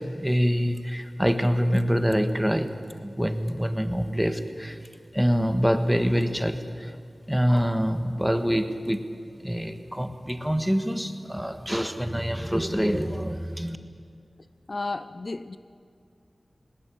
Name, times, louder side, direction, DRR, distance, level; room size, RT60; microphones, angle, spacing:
voice 1, 0.1-2.7 3.0-4.8 5.1-6.9 7.3-9.0 9.4-13.8, equal, 5° right, 8 dB, 1.5 m, -25 dB
voice 2, 14.7-15.6, left 3 dB, 50° left, 13 dB, 0.6 m, -32 dB
19.5 x 19.0 x 9.4 m, 2.3 s
wide cardioid pair, 70°, 0 cm